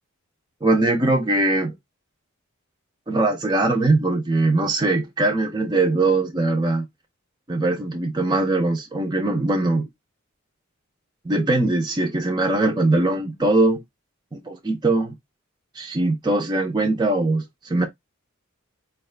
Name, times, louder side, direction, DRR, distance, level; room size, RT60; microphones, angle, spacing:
voice 1, 0.6-1.7 3.1-6.9 7.5-9.8 11.3-13.8 14.3-15.1 15.8-17.9, right 2 dB, 20° right, 0.5 m, -21 dB
4.4 x 2.3 x 3.2 m
head